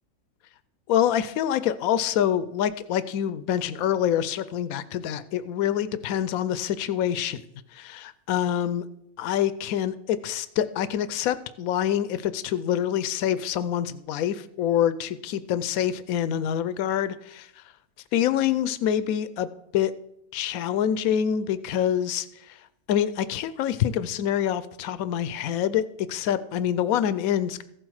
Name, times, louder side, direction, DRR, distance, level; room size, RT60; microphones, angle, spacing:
voice 1, 0.9-7.4 7.7-8.8 9.2-17.5 18.1-19.9 20.3-22.6 22.9-27.6, left 10 dB, 80° left, 14 dB, 1.1 m, -26 dB
15.0 x 7.8 x 4.8 m, 0.79 s
omnidirectional pair, 1.5 m